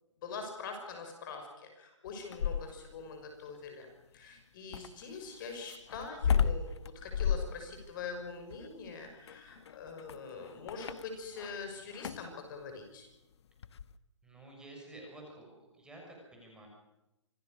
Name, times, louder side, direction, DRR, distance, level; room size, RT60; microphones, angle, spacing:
voice 1, 0.2-13.1, left 4 dB, 40° left, 5 dB, 6.0 m, -44 dB
sound 1, 2.1-3.0 4.7-11.6 11.9-12.3 13.6-13.9, left 7 dB, 60° left, 1.2 m, -34 dB
voice 2, 14.2-15.5 15.7-16.7, right 2 dB, 5° right, 0 dB, 6.8 m, -50 dB
26.5 x 18.5 x 6.8 m, 0.93 s
hypercardioid pair, 140°, 16 cm